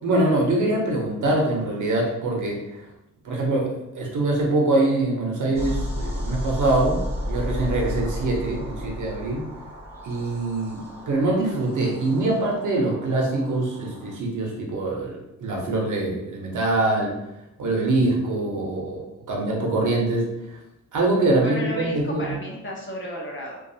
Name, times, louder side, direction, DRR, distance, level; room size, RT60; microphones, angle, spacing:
voice 1, 0.0-2.6 3.2-3.7 3.9-7.0 7.3-9.5 10.0-17.1 17.6-19.0 19.3-20.6 20.9-22.4, right 2 dB, 90° right, -1 dB, 0.7 m, -24 dB
sound 1, 5.5-14.2, left 1 dB, 10° right, 0.6 m, -33 dB
voice 2, 21.4-23.6, left 1 dB, 40° left, -2 dB, 0.7 m, -33 dB
2.3 x 2.3 x 2.7 m, 0.88 s
wide cardioid pair, 130°, 30 cm